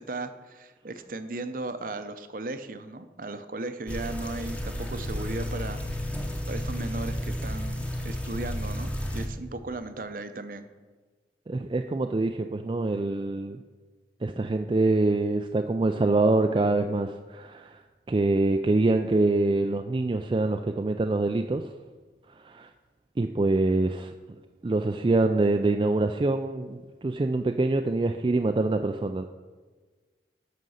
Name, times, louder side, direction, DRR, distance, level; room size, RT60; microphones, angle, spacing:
voice 1, 0.0-6.1 6.5-10.6, right 2 dB, 50° right, 10 dB, 0.7 m, -36 dB
sound 1, 3.9-9.3, equal, 5° left, 0.9 m, -32 dB
voice 2, 11.5-13.6 14.2-17.8 18.1-21.6 22.4-22.7 23.2-24.1 24.6-29.2, right 2 dB, 30° right, 5 dB, 0.3 m, -25 dB
9.4 x 6.6 x 6.4 m, 1.4 s
head